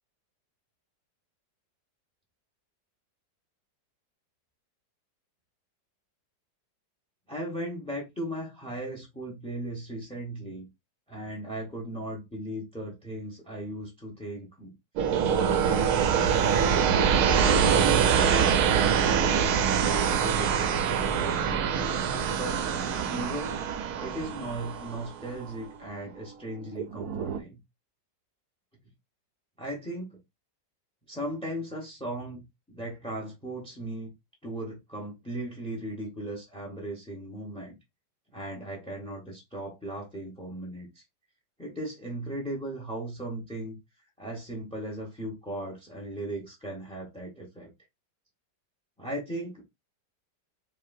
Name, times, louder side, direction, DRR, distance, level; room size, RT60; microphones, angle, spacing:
voice 1, 7.3-10.7 11.1-14.7 15.2-16.9 17.4-21.6 22.3-22.6 23.1-23.6 24.0-27.6 29.6-30.2 31.1-34.1 34.4-37.7 38.3-41.0 41.6-43.8 44.2-47.7 49.0-49.6, right 1 dB, 5° left, 0.7 m, -37 dB
sound 1, 15.0-25.7 26.8-27.4, right 7 dB, 70° right, 1.0 m, -24 dB
5.5 x 2.7 x 2.6 m
omnidirectional pair, 1.9 m